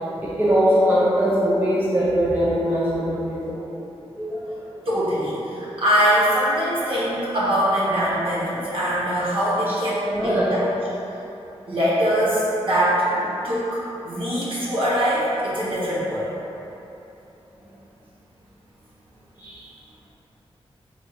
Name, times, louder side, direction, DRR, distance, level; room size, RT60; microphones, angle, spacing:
voice 1, 0.2-3.6 4.2-4.9 9.7-9.8 10.1-10.8 17.6-17.7 19.4-19.7, equal, 15° right, -8 dB, 0.5 m, -22 dB
voice 2, 4.8-10.4 11.7-13.0 13.4-16.3, equal, 55° right, -9 dB, 1.1 m, -22 dB
3.4 x 2.4 x 4.1 m, 2.9 s
wide cardioid pair, 95°, 11 cm